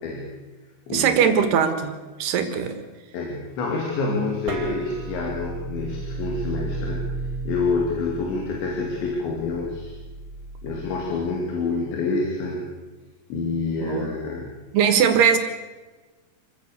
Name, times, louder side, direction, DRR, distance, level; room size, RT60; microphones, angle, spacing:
voice 1, 0.0-0.4 0.9-1.2 3.1-7.0 7.4-10.0 10.6-12.6 13.3-14.5, left 3 dB, 90° left, -1 dB, 4.9 m, -27 dB
voice 2, 0.9-2.8 13.8-14.1 14.7-15.4, right 7 dB, 70° right, 8 dB, 3.4 m, -20 dB
sound 1, 4.5-11.2, right 3 dB, 30° right, 2.8 m, -34 dB
27.5 x 15.5 x 6.8 m, 1.3 s
omnidirectional pair, 5.0 m